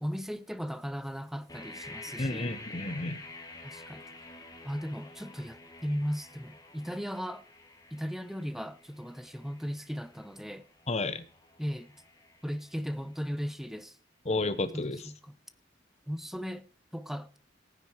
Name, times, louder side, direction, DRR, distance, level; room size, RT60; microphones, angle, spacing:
voice 1, 0.0-2.5 3.6-4.0 4.6-7.4 7.9-10.7 11.6-11.9 12.4-14.0 14.7-15.4 16.1-16.6 16.9-17.4, equal, ahead, 0.7 m, -37 dB
sound 1, 1.5-13.3, left 2 dB, 20° left, 2.1 m, -49 dB
voice 2, 2.2-3.2 10.9-11.2 14.3-15.0, left 2 dB, 35° left, 1.1 m, -31 dB
15.5 x 9.6 x 4.7 m
head